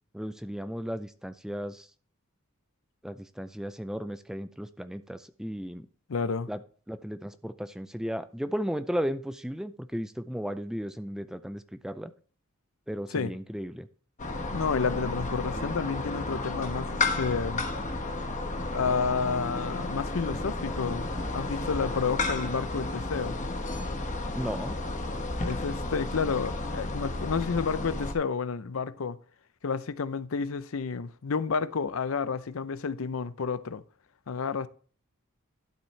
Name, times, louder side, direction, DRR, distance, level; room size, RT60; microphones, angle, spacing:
voice 1, 0.1-1.9 3.0-5.9 6.5-6.6 6.9-12.1 12.9-13.9 24.3-24.8, equal, 5° right, 0.4 m, -35 dB
voice 2, 6.1-6.5 13.1-13.3 14.5-17.6 18.7-21.1 21.3-23.4 25.4-29.2 29.6-33.8 34.3-34.7, left 5 dB, 70° left, 0.6 m, -30 dB
sound 1, 14.2-28.1, left 2 dB, 35° left, 1.1 m, -32 dB
12.0 x 7.2 x 3.2 m
head